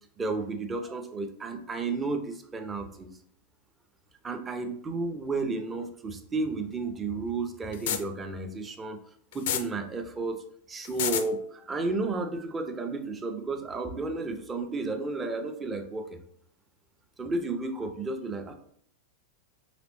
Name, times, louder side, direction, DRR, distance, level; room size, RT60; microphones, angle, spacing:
voice 1, 0.2-3.1 4.2-9.0 9.3-16.2 17.2-18.5, right 3 dB, 20° right, 6 dB, 0.6 m, -32 dB
sound 1, 7.7-8.0 9.3-9.6 10.8-11.2, left 10 dB, 55° left, 0.4 m, -27 dB
5.0 x 3.2 x 3.0 m, 0.63 s
figure-of-eight pair, 90°, 0 cm